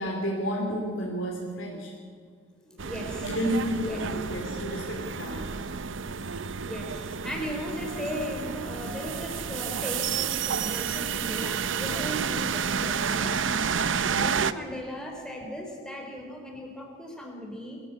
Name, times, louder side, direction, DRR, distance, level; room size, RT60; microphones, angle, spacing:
voice 1, 0.0-1.9 3.2-5.5 14.1-14.4, equal, 85° left, -2 dB, 3.2 m, -31 dB
voice 2, 2.7-3.4 3.8-4.0 6.6-13.4 13.7-17.8, equal, 5° left, 0 dB, 4.0 m, -37 dB
sound 1, 2.8-14.5, right 6 dB, 80° right, 0.7 m, -30 dB
23.5 x 14.5 x 8.3 m, 2.1 s
head